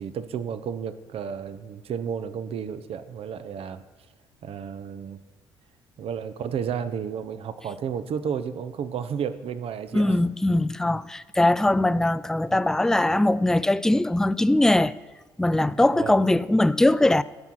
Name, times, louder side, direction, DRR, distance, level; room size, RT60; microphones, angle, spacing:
voice 1, 0.0-3.8 4.4-5.2 6.0-10.2 15.7-16.2, right 7 dB, 50° right, 0.6 m, -32 dB
voice 2, 9.9-14.9 15.4-17.2, left 1 dB, 5° left, 0.3 m, -21 dB
13.0 x 4.6 x 6.0 m
hypercardioid pair, 50°, 12 cm